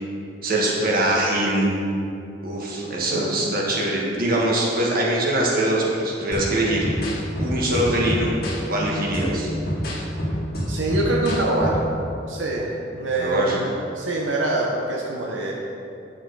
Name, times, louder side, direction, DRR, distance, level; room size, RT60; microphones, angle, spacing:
voice 1, 0.4-1.7 2.4-6.9 7.4-8.3 8.7-9.5 13.2-13.6, right 1 dB, 55° right, -3 dB, 1.6 m, -22 dB
sound 1, 6.3-12.0, equal, 55° left, 1.6 m, -28 dB
voice 2, 10.7-15.5, right 2 dB, 90° right, -2 dB, 0.9 m, -25 dB
9.0 x 5.7 x 4.7 m, 2.7 s
head